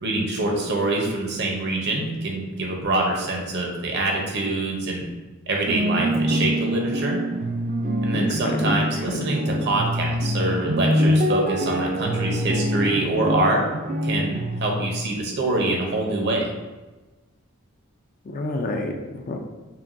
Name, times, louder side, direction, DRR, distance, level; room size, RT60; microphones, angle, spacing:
voice 1, 0.0-5.0 5.5-7.2 8.0-13.7 14.0-16.5, right 2 dB, 55° right, 0 dB, 0.8 m, -25 dB
sound 1, 5.7-14.9, equal, 40° right, 0.3 m, -25 dB
voice 2, 8.1-8.8 9.1-9.3 18.3-19.4, left 2 dB, 40° left, 3 dB, 0.4 m, -29 dB
5.9 x 2.3 x 2.6 m, 1.2 s
head